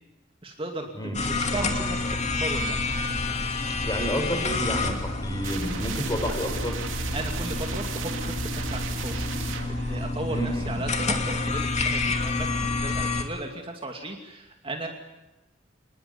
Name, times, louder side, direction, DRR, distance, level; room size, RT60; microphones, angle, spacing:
voice 1, 0.4-2.8 7.1-14.9, right 2 dB, 30° right, 3 dB, 2.5 m, -36 dB
sound 1, 1.1-13.2, left 3 dB, 35° left, 2.7 m, -29 dB
voice 2, 3.8-6.8 10.3-10.9, equal, 20° left, 5 dB, 5.6 m, -30 dB
sound 2, 5.4-11.1, right 5 dB, 75° right, 2.8 m, -36 dB
27.0 x 21.0 x 9.7 m, 1.0 s
head